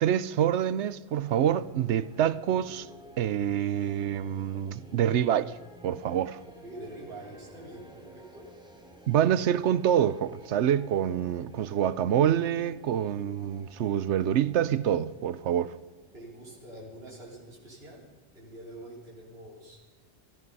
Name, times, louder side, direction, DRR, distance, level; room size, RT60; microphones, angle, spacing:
voice 1, 0.0-2.9 3.2-5.5 5.8-6.4 9.1-15.7, right 10 dB, 90° right, 1.0 m, -26 dB
sound 1, 1.2-19.4, right 2 dB, 5° right, 2.3 m, -53 dB
voice 2, 6.6-8.5 16.1-18.0 18.3-19.8, right 1 dB, 60° right, 4.2 m, -45 dB
18.0 x 14.5 x 5.5 m
omnidirectional pair, 1.1 m